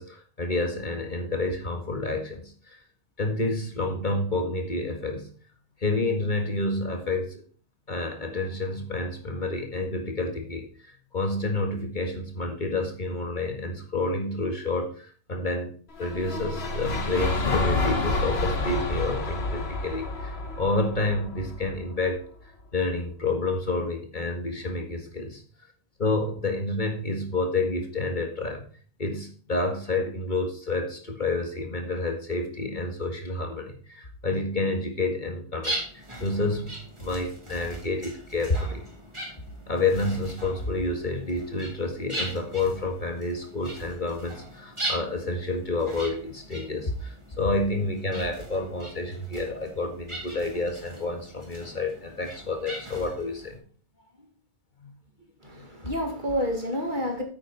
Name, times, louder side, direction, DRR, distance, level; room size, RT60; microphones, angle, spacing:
voice 1, 0.0-2.8 3.2-5.3 5.8-7.4 7.9-22.2 22.7-25.4 26.0-28.7 29.0-38.9 39.7-53.6 54.8-54.9 55.6-55.7, left 2 dB, 50° left, 3 dB, 2.0 m, -29 dB
sound 1, 15.9-22.1, left 3 dB, 75° left, 1.7 m, -29 dB
sound 2, 35.6-53.6, right 1 dB, 30° right, 3.5 m, -39 dB
voice 2, 55.4-57.2, equal, 50° right, 2 dB, 2.5 m, -29 dB
9.2 x 8.8 x 4.2 m, 0.42 s
omnidirectional pair, 1.1 m